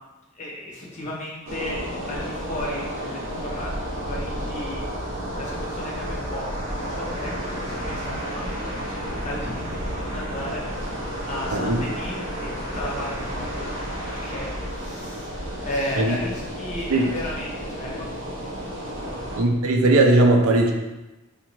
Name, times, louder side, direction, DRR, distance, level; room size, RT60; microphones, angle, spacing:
voice 1, 0.3-8.5 8.8-13.7 14.1-18.3 19.0-19.2, left 1 dB, 35° left, -4 dB, 0.8 m, -35 dB
Ocean waves close up, 1.5-19.4, equal, 65° right, 0.9 m, -31 dB
voice 2, 11.5-11.8 16.0-16.2 16.9-17.1 19.3-20.7, right 2 dB, 85° right, 2 dB, 0.5 m, -18 dB
3.4 x 2.8 x 2.9 m, 1.0 s
head